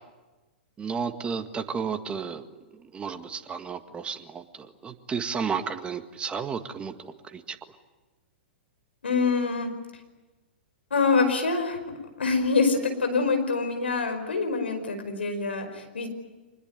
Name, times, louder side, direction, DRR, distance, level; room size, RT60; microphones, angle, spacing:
voice 1, 0.8-2.5 2.8-7.6, right 6 dB, 20° right, 8 dB, 1.8 m, -33 dB
voice 2, 9.0-9.7 10.9-11.8 12.2-16.1, left 4 dB, 80° left, 7 dB, 5.0 m, -25 dB
25.5 x 20.5 x 9.5 m, 1.2 s
hypercardioid pair, 110°, 6 cm